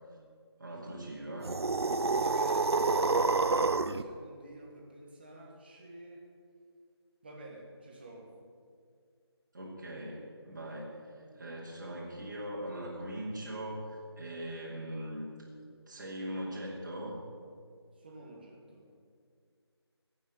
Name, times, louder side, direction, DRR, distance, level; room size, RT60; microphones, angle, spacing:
voice 1, 0.6-1.5 9.5-15.3 15.6-17.2, right 1 dB, 45° right, -4 dB, 2.6 m, -40 dB
sound 1, 1.4-4.0, right 3 dB, 65° right, 0.6 m, -28 dB
voice 2, 2.2-6.2 7.2-8.3 18.0-18.9, right 1 dB, 20° right, -1 dB, 1.8 m, -50 dB
16.5 x 6.8 x 9.4 m, 2.1 s
figure-of-eight pair, 175°, 14 cm